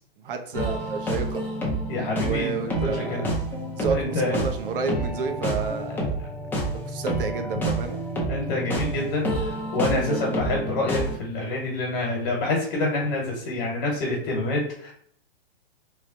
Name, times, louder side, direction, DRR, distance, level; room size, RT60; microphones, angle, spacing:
voice 1, 0.2-1.4 2.2-3.3 3.7-6.1 6.7-8.0 9.9-10.5, right 5 dB, 65° right, 5 dB, 0.8 m, -30 dB
sound 1, 0.5-11.2, right 1 dB, 5° left, 0.6 m, -29 dB
voice 2, 1.9-3.3 3.9-4.4 8.3-14.9, left 2 dB, 50° left, -2 dB, 1.3 m, -27 dB
3.2 x 2.3 x 3.7 m, 0.64 s
hypercardioid pair, 140°, 30 cm